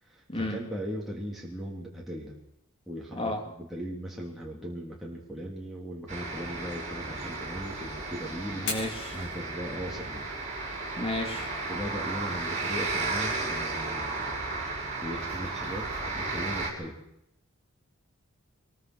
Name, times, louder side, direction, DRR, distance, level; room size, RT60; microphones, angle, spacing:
voice 1, 0.0-2.4 2.9-8.7 9.1-10.3 11.7-14.2 14.6-17.0, equal, ahead, -4 dB, 3.5 m, -38 dB
sound 1, 6.1-16.7, right 3 dB, 30° right, 5.8 m, -34 dB
Fire, 8.5-16.5, left 4 dB, 55° left, 6.1 m, -45 dB
voice 2, 8.5-9.2 11.0-11.5, left 1 dB, 25° left, 2 dB, 3.1 m, -32 dB
24.0 x 22.0 x 6.5 m, 0.80 s
head